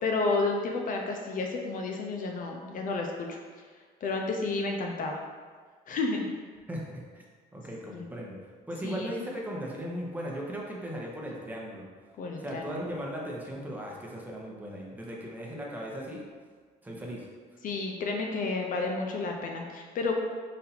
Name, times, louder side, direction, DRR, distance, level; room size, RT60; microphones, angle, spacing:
voice 1, 0.0-3.4 4.0-5.2 5.9-6.2 7.9-8.0 8.8-9.1 12.2-12.8 17.6-20.1, left 3 dB, 55° left, 1 dB, 0.5 m, -31 dB
voice 2, 6.7-7.2 7.5-8.4 8.7-11.9 12.4-16.2 16.8-17.3, equal, 10° right, -3 dB, 0.9 m, -37 dB
4.1 x 2.6 x 4.1 m, 1.5 s
cardioid pair, 110°, 17 cm